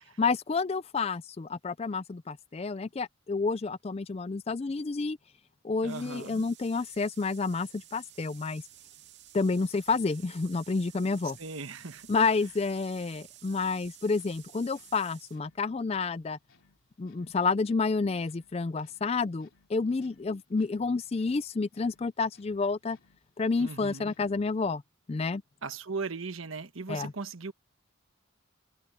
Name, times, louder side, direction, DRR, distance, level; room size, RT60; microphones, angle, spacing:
voice 1, 0.2-5.2 5.6-8.6 9.3-11.4 12.1-16.4 17.0-23.0 23.4-24.8 25.1-25.4 26.9-27.1, left 4 dB, 30° left, 0.4 m, -29 dB
sound 1, 5.8-15.4, right 13 dB, 55° right, 2.4 m, -53 dB
voice 2, 5.8-6.5 11.4-12.1 23.6-24.1 25.6-27.5, right 4 dB, 85° right, 1.3 m, -38 dB
sound 2, 9.5-24.6, left 4 dB, 90° left, 3.4 m, -67 dB
head